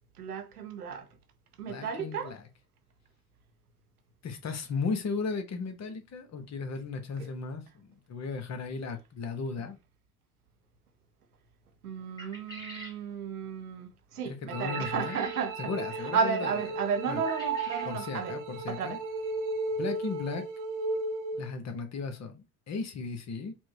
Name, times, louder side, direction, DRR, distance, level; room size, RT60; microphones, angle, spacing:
voice 1, 0.2-1.1 1.6-2.3 7.2-7.3 11.8-15.6 16.1-18.3 18.7-19.0, right 6 dB, 90° right, 0.6 m, -33 dB
voice 2, 1.7-2.4 4.2-9.8 14.2-15.2 15.6-16.6 17.1-17.2 17.8-19.0 19.8-20.5 21.3-23.5, left 4 dB, 40° left, 0.9 m, -36 dB
sound 1, 12.2-13.0 14.7-15.5 17.2-17.9, equal, 10° left, 1.5 m, -44 dB
sound 2, 14.5-21.5, right 3 dB, 45° right, 0.7 m, -35 dB
4.4 x 2.2 x 2.7 m
figure-of-eight pair, 60°, 44 cm